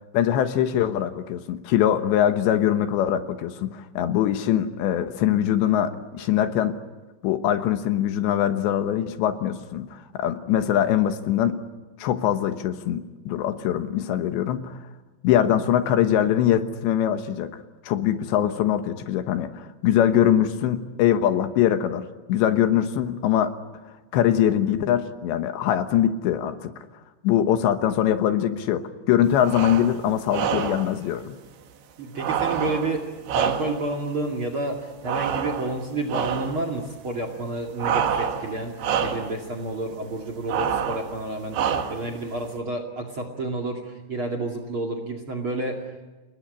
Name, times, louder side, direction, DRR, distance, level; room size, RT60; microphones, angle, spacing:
voice 1, 0.1-6.8 7.2-11.6 12.0-14.8 15.2-17.5 17.9-23.5 24.1-26.7 27.2-31.4, left 10 dB, 75° left, 9 dB, 3.3 m, -22 dB
sound 1, 29.4-29.9 30.3-30.9 32.2-34.0 35.1-35.8 36.1-36.6 37.8-38.5 38.8-39.3 40.5-41.1 41.5-42.1, right 7 dB, 80° right, 4.1 m, -26 dB
voice 2, 32.0-45.8, right 2 dB, 35° right, 6 dB, 2.4 m, -30 dB
29.5 x 19.5 x 9.9 m, 1.2 s
omnidirectional pair, 5.4 m